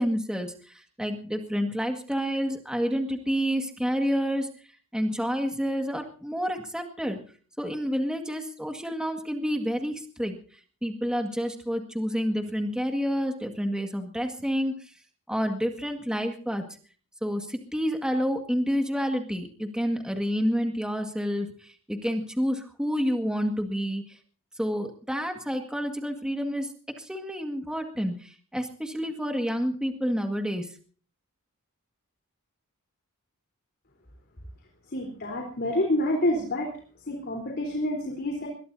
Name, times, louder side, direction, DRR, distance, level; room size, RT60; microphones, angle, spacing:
voice 1, 0.0-4.5 4.9-7.2 7.6-10.4 10.8-14.9 15.3-16.6 17.2-24.2 24.6-30.7, equal, 5° right, 4 dB, 1.9 m, -29 dB
voice 2, 34.9-36.8 37.1-38.5, left 1 dB, 50° left, 1 dB, 3.9 m, -28 dB
22.0 x 22.0 x 2.8 m, 0.42 s
head